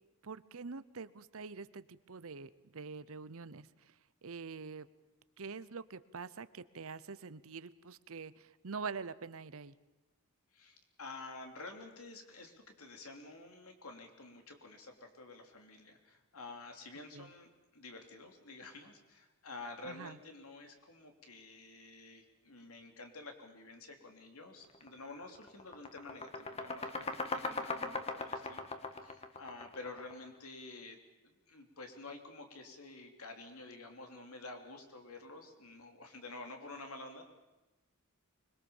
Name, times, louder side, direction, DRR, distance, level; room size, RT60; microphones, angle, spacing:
voice 1, 0.2-3.7 4.2-4.9 5.4-9.7 17.1-17.3 19.8-20.2, right 5 dB, 65° right, 16 dB, 0.8 m, -45 dB
voice 2, 10.5-28.7 29.0-31.0 31.2-37.2, left 3 dB, 70° left, 4 dB, 3.3 m, -50 dB
sound 1, 24.7-24.9 25.3-30.2, left 3 dB, 30° left, 1.7 m, -39 dB
25.0 x 22.0 x 7.2 m, 1.0 s
head